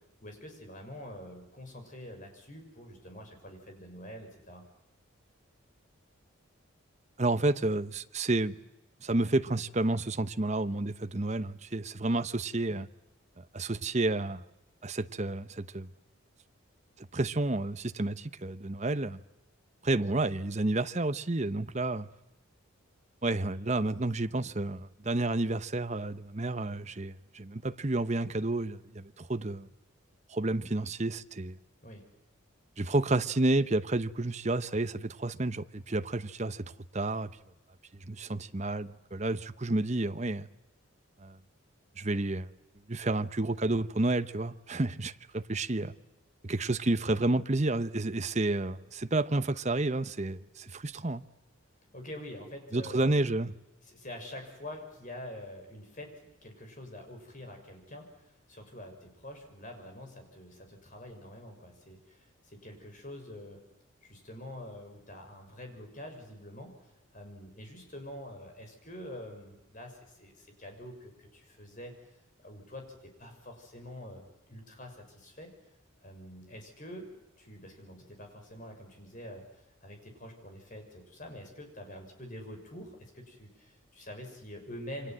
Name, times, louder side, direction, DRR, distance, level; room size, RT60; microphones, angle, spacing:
voice 1, 0.2-4.6 31.8-32.1 51.9-53.2 53.9-63.6 64.0-71.9 72.4-75.5 76.0-77.1 77.4-85.1, left 1 dB, 35° left, 6.6 m, -46 dB
voice 2, 7.2-8.6 9.0-12.9 13.4-14.4 14.8-15.9 17.0-19.2 19.8-22.1 23.2-29.7 30.3-31.6 32.8-36.7 36.9-37.3 38.0-40.5 41.2-41.4 42.0-42.5 42.9-45.9 46.4-51.2 52.7-53.5, right 2 dB, 30° right, 0.9 m, -30 dB
29.0 x 25.0 x 7.7 m
head